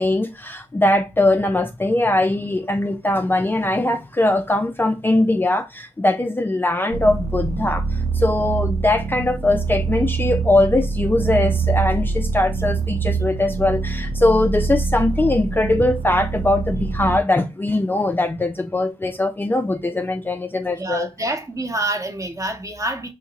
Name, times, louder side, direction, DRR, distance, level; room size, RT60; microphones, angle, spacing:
voice 1, 0.0-21.1, left 2 dB, 15° left, 0.4 m, -21 dB
sound 1, 6.9-17.2, right 4 dB, 70° right, 0.4 m, -24 dB
voice 2, 20.6-23.1, right 1 dB, 25° right, 0.9 m, -27 dB
2.8 x 2.5 x 3.9 m
cardioid pair, 50°, 12 cm